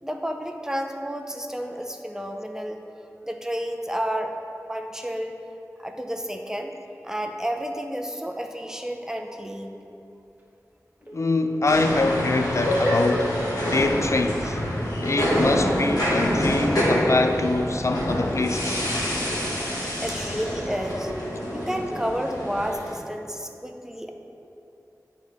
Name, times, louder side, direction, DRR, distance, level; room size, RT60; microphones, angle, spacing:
voice 1, 0.0-2.8 3.3-4.4 4.7-5.4 5.8-6.7 7.0-9.8 20.0-21.1 21.5-24.1, equal, 10° right, 4 dB, 0.6 m, -31 dB
Telephone, 11.0-14.1 14.5-14.6, left 5 dB, 25° right, 1.1 m, -40 dB
voice 2, 11.1-13.4 13.7-14.6 15.0-18.8, left 2 dB, 50° left, 7 dB, 0.4 m, -24 dB
sound 1, 11.7-22.9, equal, 90° left, 1.4 m, -26 dB
9.8 x 3.5 x 3.5 m, 2.8 s
wide cardioid pair, 45°, 6 cm